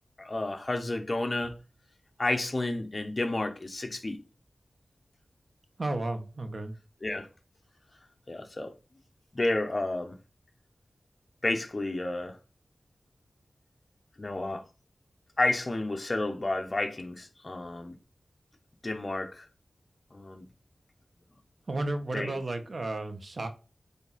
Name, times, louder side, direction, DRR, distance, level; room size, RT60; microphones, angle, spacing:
voice 1, 0.2-1.6 2.2-4.2 7.0-7.3 8.3-8.7 9.3-10.2 11.4-12.4 14.2-14.6 15.4-17.9 18.8-19.4 20.1-20.4 22.1-22.4, left 2 dB, 35° left, 1.1 m, -31 dB
voice 2, 5.8-6.7 21.7-23.5, right 2 dB, 55° right, 1.3 m, -33 dB
8.8 x 3.6 x 4.2 m
wide cardioid pair, 80°, 0 cm